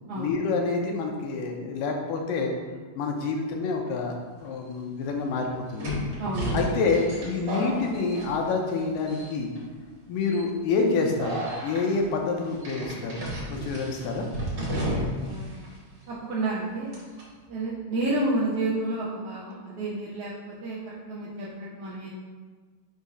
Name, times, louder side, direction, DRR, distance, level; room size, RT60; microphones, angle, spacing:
voice 1, 0.2-2.5 3.0-6.0 6.5-9.5 10.1-11.3 11.6-13.2 13.5-14.3, left 4 dB, 90° left, 2 dB, 2.4 m, -27 dB
sound 1, 4.4-4.5 5.8-8.8 9.1-9.6 10.2-10.5 11.2-11.8 12.6-15.4 15.6-15.7 16.9-17.2, equal, 45° right, 1.6 m, -32 dB
voice 2, 6.2-6.6 14.8-15.6 16.1-16.9 17.5-22.1, right 2 dB, 75° right, -8 dB, 1.4 m, -30 dB
7.0 x 2.7 x 5.2 m, 1.5 s
omnidirectional pair, 3.8 m